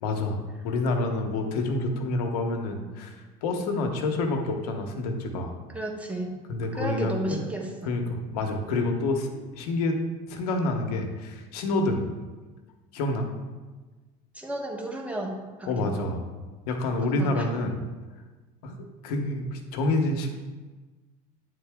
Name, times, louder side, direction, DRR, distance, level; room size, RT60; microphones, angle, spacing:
voice 1, 0.0-5.6 6.5-7.4 7.9-10.0 10.3-12.0 12.9-13.3 15.7-16.2 16.7-17.7 18.6-18.8 19.0-20.3, left 2 dB, 85° left, 4 dB, 0.9 m, -28 dB
voice 2, 5.7-6.4 6.7-7.9 14.3-16.1 17.2-17.7, right 1 dB, 5° right, 1 dB, 1.2 m, -33 dB
9.0 x 3.7 x 3.5 m, 1.3 s
supercardioid pair, 95°, 20 cm